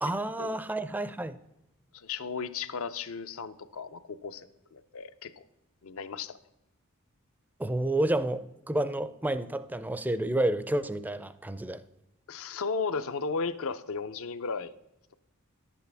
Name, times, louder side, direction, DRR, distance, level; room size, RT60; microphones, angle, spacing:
voice 1, 0.0-1.4 7.6-11.8, right 1 dB, 10° right, 14 dB, 0.4 m, -30 dB
voice 2, 1.9-5.4 5.8-6.4 12.3-14.7, left 5 dB, 65° left, 12 dB, 0.5 m, -35 dB
11.0 x 8.3 x 3.4 m, 0.91 s
head